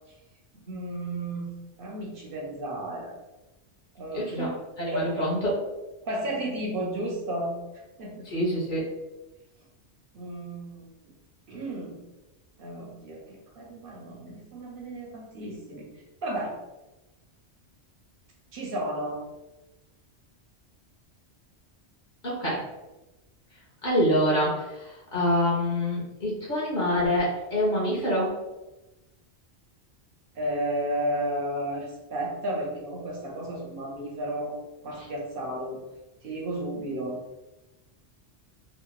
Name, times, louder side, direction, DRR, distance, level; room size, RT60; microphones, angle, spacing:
voice 1, 0.5-3.1 4.0-4.6 4.9-5.3 6.0-7.5 8.0-8.3 10.1-11.2 11.5-12.0 12.6-15.8 16.2-16.5 18.5-19.2 30.4-34.6 34.8-35.8 36.2-37.2, right 1 dB, 60° right, -1 dB, 0.6 m, -33 dB
voice 2, 4.1-4.5 4.8-5.5 8.3-8.8 22.2-22.6 23.8-28.3, equal, 50° left, -5 dB, 0.8 m, -26 dB
2.8 x 2.1 x 2.2 m, 1.0 s
omnidirectional pair, 1.2 m